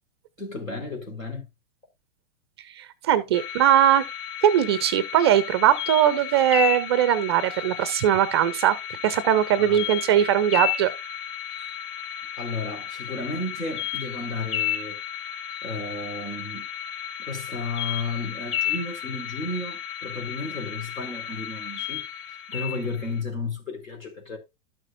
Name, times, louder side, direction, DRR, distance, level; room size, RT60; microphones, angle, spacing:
voice 1, 0.4-1.4 9.5-9.9 12.4-14.9 15.6-16.6 17.3-22.0 22.3-24.4, left 3 dB, 80° left, 4.7 m, -33 dB
voice 2, 2.8-4.0 4.4-8.8 9.0-10.9, right 10 dB, 20° right, 0.3 m, -20 dB
sound 1, 3.3-23.2, left 10 dB, 35° left, 2.8 m, -33 dB
12.5 x 6.5 x 2.6 m
figure-of-eight pair, 105°, 40 cm